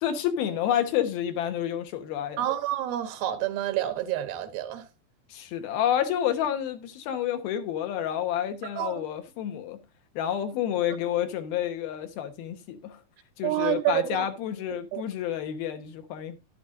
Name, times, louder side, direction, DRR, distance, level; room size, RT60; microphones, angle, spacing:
voice 1, 0.0-2.5 5.3-9.8 10.2-13.0 13.4-16.4, left 10 dB, 85° left, 3.1 m, -29 dB
voice 2, 2.4-4.8 8.8-9.0 13.4-14.3 14.9-15.0, right 13 dB, 85° right, 3.2 m, -28 dB
12.0 x 10.0 x 2.6 m
omnidirectional pair, 4.2 m